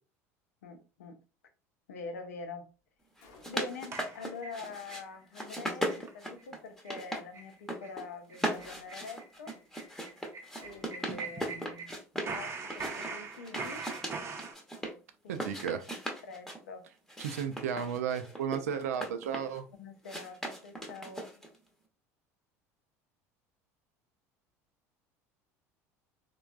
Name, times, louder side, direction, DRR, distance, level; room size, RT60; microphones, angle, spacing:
voice 1, 0.6-1.2 1.9-2.7 3.5-9.5 10.6-11.9 12.3-13.9 15.2-15.8 16.2-16.8 19.8-21.4, left 4 dB, 85° left, 0.6 m, -45 dB
Gunshot gunfire, 3.2-3.9 8.5-9.2 10.6-11.3, left 4 dB, 65° left, 0.9 m, -58 dB
sound 1, 3.2-5.0 5.3-7.2 7.5-8.0 8.3-12.4 12.7-14.9 15.3-16.6 17.1-19.6 20.0-21.6, equal, 5° left, 0.8 m, -38 dB
sound 2, 3.9-5.0 5.4-5.5 5.9-6.1 6.4-6.5 6.8-7.0 7.3-7.5 7.8-8.0 8.3-11.9 12.2-14.5, right 4 dB, 35° right, 0.6 m, -42 dB
voice 2, 15.3-15.8 17.2-19.7, right 8 dB, 85° right, 0.4 m, -33 dB
3.3 x 2.3 x 2.4 m
hypercardioid pair, 80°, 8 cm